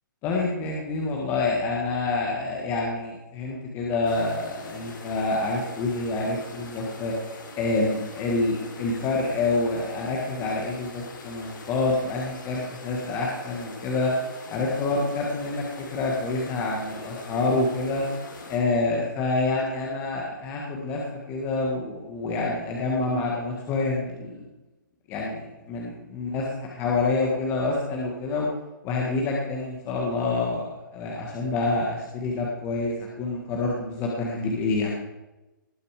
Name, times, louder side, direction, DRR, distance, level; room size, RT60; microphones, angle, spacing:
voice 1, 0.2-14.1 14.5-18.0 18.5-21.0 21.3-24.4 25.1-28.5 28.8-35.0, left 3 dB, 20° left, -2 dB, 1.6 m, -27 dB
sound 1, 4.0-18.6, left 3 dB, 70° left, 3.6 m, -42 dB
19.0 x 6.8 x 5.0 m, 1.0 s
hypercardioid pair, 160°, 11 cm